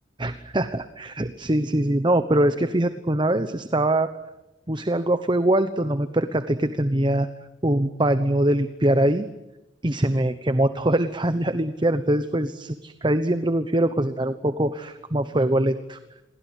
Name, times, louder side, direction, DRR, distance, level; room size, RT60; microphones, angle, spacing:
voice 1, 0.2-4.1 4.7-7.3 7.6-9.3 9.8-16.0, right 1 dB, 25° right, 11 dB, 1.1 m, -23 dB
29.0 x 23.0 x 8.3 m, 0.94 s
head